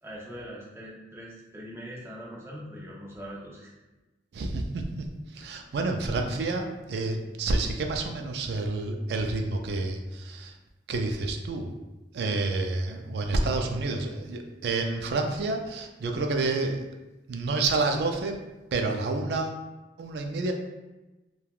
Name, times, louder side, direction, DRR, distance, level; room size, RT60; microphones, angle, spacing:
voice 1, 0.0-3.7, equal, 15° right, -5 dB, 0.6 m, -42 dB
voice 2, 4.3-10.5 10.9-11.7 12.1-16.9 17.3-18.4 18.7-19.6 20.0-20.5, right 3 dB, 65° right, 4 dB, 0.3 m, -29 dB
3.2 x 2.2 x 2.3 m, 1.1 s
head